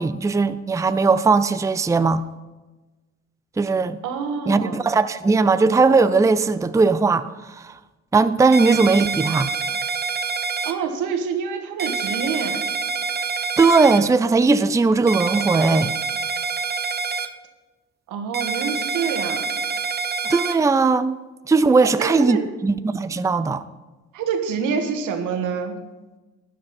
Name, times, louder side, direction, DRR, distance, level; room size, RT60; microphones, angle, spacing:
voice 1, 0.0-2.2 3.6-4.0 4.5-7.7 8.1-9.5 13.6-15.9 20.3-21.2 21.5-23.6, right 4 dB, 10° right, 0.5 m, -18 dB
voice 2, 4.0-4.8 10.6-12.6 18.1-19.5 21.8-22.4 24.1-25.8, right 6 dB, 90° right, 1.6 m, -26 dB
sound 1, 8.5-10.7 11.8-14.0 15.1-17.3 18.3-20.5, right 5 dB, 35° right, 0.9 m, -26 dB
12.5 x 10.5 x 4.3 m
cardioid pair, 90°, 30 cm